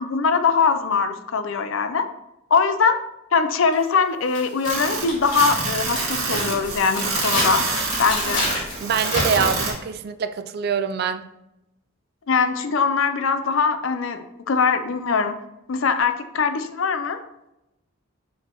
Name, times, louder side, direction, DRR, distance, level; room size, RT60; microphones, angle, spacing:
voice 1, 0.0-2.0 2.5-3.0 3.3-7.6 8.0-8.5 12.3-15.3 15.7-17.2, left 5 dB, 70° left, 9 dB, 0.5 m, -22 dB
sound 1, 3.7-3.8 4.3-9.7, left 1 dB, 35° left, 2.4 m, -29 dB
sound 2, 4.6-9.7, right 4 dB, 85° right, 1.9 m, -27 dB
voice 2, 8.8-11.2, right 6 dB, 45° right, 10 dB, 0.3 m, -24 dB
6.6 x 5.0 x 3.0 m, 0.90 s
head